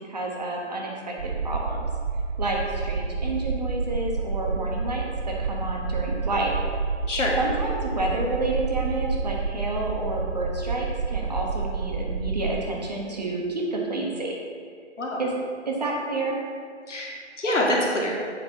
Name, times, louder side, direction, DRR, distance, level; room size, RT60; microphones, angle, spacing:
voice 1, 0.1-1.9 2.4-6.5 7.4-14.4 15.2-15.3 15.7-16.4, right 2 dB, 35° right, -1 dB, 1.1 m, -29 dB
sound 1, 1.2-12.6, right 4 dB, 60° right, 0.6 m, -29 dB
voice 2, 7.1-7.4 15.0-15.2 16.9-18.1, left 1 dB, 75° left, -2 dB, 2.1 m, -25 dB
8.1 x 5.2 x 4.4 m, 2.1 s
hypercardioid pair, 170°, 37 cm